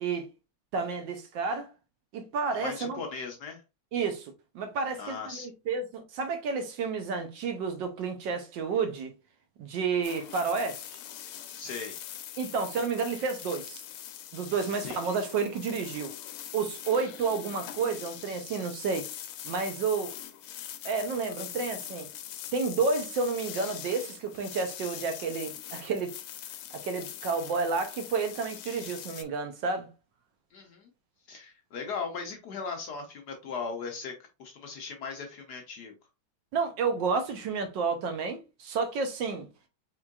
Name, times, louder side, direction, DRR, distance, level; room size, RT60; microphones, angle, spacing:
voice 1, 0.7-1.7 2.1-3.0 3.9-9.1 9.6-11.0 12.4-13.8 14.3-16.1 16.5-19.1 19.4-20.1 20.8-22.1 22.5-26.1 26.7-29.9 36.5-39.5, right 5 dB, 75° right, 1.2 m, -30 dB
voice 2, 2.6-3.6 5.0-5.5 11.6-11.9 14.8-15.2 30.5-30.9 31.3-34.1 34.4-35.9, left 5 dB, 65° left, 1.0 m, -38 dB
sound 1, 10.0-29.2, left 11 dB, 85° left, 1.4 m, -42 dB
4.5 x 3.6 x 2.3 m
omnidirectional pair, 2.3 m